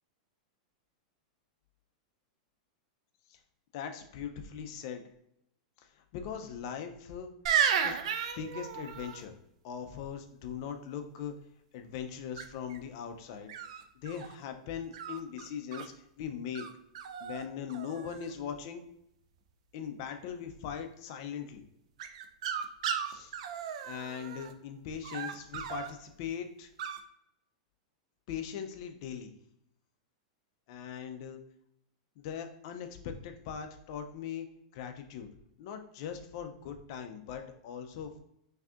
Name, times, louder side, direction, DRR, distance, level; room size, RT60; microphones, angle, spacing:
voice 1, 3.7-5.0 5.9-7.3 7.8-8.0 8.4-9.3 9.6-11.3 11.7-13.5 14.0-16.7 17.2-18.8 19.7-21.6 23.1-23.4 23.8-26.7 28.3-29.3 30.7-31.4 32.2-34.5 34.7-35.3 35.6-38.2, left 8 dB, 40° left, 6 dB, 0.4 m, -40 dB
sound 1, 7.5-9.2 12.4-12.8 13.5-14.3 14.9-15.9 16.6-16.7 17.0-17.4 17.7-18.3 22.0-24.5 25.0-25.9 26.8-27.0, right 8 dB, 55° right, 0.4 m, -34 dB
5.8 x 2.7 x 2.4 m, 0.77 s
supercardioid pair, 175°, 4 cm